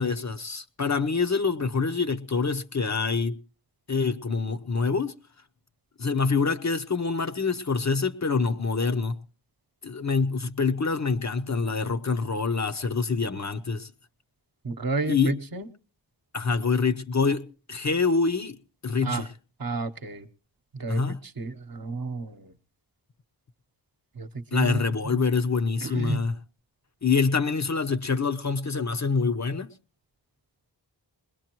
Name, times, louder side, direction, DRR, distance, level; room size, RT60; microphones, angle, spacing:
voice 1, 0.0-3.4 3.9-5.1 6.0-9.1 9.8-13.9 15.0-15.4 16.3-18.6 18.8-19.3 20.9-21.2 24.5-26.4 27.0-29.7, left 4 dB, 40° left, 0.7 m, -26 dB
voice 2, 14.6-15.7 19.0-19.2 19.6-20.3 20.8-21.0 21.4-22.5 24.2-24.8 25.8-26.2, right 3 dB, 50° right, 1.0 m, -31 dB
21.5 x 20.5 x 3.0 m
wide cardioid pair, 55°, 44 cm